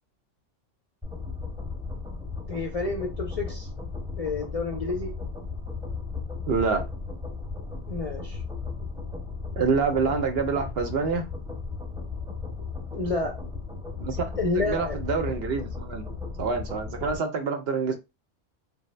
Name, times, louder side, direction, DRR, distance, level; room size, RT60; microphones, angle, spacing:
sound 1, 1.0-17.2, left 4 dB, 5° right, 0.8 m, -35 dB
voice 1, 2.5-3.7 4.2-5.1 7.9-8.4 12.9-13.4 14.4-15.0, left 3 dB, 45° left, 0.4 m, -29 dB
voice 2, 6.5-6.8 9.6-11.3 14.0-14.3 14.5-16.0 16.4-17.9, right 5 dB, 60° right, 0.7 m, -26 dB
3.4 x 2.0 x 3.1 m
omnidirectional pair, 1.3 m